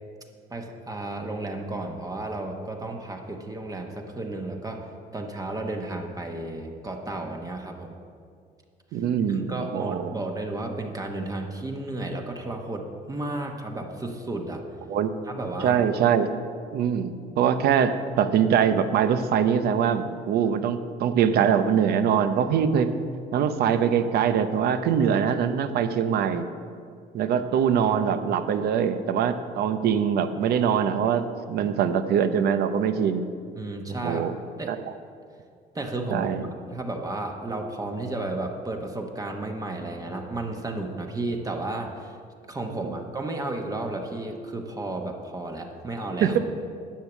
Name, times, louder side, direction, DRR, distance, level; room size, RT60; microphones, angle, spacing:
voice 1, 0.5-7.9 8.9-9.0 9.3-14.6 15.3-15.8 33.6-34.3 34.6-34.7 35.7-36.3 36.7-42.2 42.5-46.4, right 2 dB, 20° right, 2 dB, 1.1 m, -33 dB
voice 2, 8.9-10.2 14.9-15.1 15.6-16.3 16.7-22.9 23.3-26.5 27.1-33.2 34.0-34.4 34.7-34.8 36.1-36.4 42.8-42.9 46.2-46.4, right 8 dB, 70° right, 10 dB, 0.8 m, -23 dB
10.5 x 6.6 x 7.3 m, 2.2 s
cardioid pair, 110°, 17 cm